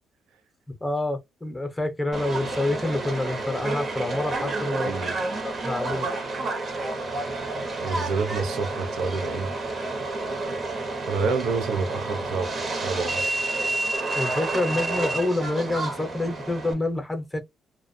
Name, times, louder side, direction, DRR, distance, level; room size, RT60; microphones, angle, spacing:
voice 1, 0.8-4.9 5.4-6.1 14.1-17.4, left 2 dB, 15° left, 0.7 m, -27 dB
Subway metro underground, 2.1-16.7, right 2 dB, 45° right, 0.8 m, -30 dB
voice 2, 4.7-5.1 7.8-9.5 11.1-13.3, right 4 dB, 80° right, 0.5 m, -28 dB
2.4 x 2.2 x 2.6 m
cardioid pair, 90°, 0 cm